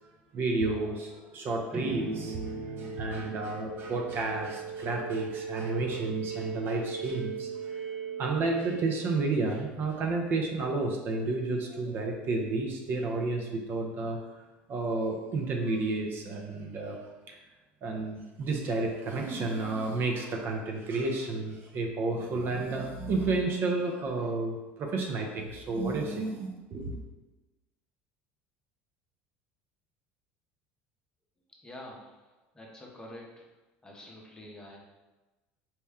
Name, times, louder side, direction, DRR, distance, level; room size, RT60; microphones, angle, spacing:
voice 1, 0.3-7.8 8.2-14.2 14.7-17.0 17.3-17.4 17.8-27.0, right 3 dB, 45° right, 1 dB, 0.5 m, -31 dB
sound 1, 1.7-9.6, right 5 dB, 15° right, 0.8 m, -38 dB
voice 2, 31.6-32.1 32.5-33.5 33.8-34.8, left 1 dB, 15° left, -1 dB, 0.7 m, -46 dB
4.2 x 2.2 x 3.5 m, 1.1 s
supercardioid pair, 115°, 5 cm